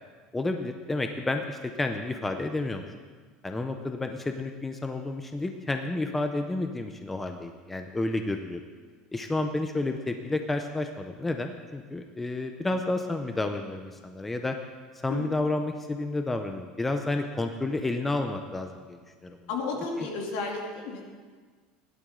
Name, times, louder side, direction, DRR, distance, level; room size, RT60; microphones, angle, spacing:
voice 1, 0.3-2.9 3.4-8.6 9.1-14.6 15.0-19.4 20.0-20.1, left 2 dB, 5° left, 5 dB, 0.5 m, -30 dB
voice 2, 19.5-21.1, left 3 dB, 70° left, -1 dB, 2.7 m, -32 dB
16.5 x 11.5 x 3.7 m, 1.5 s
cardioid pair, 180°, 2 cm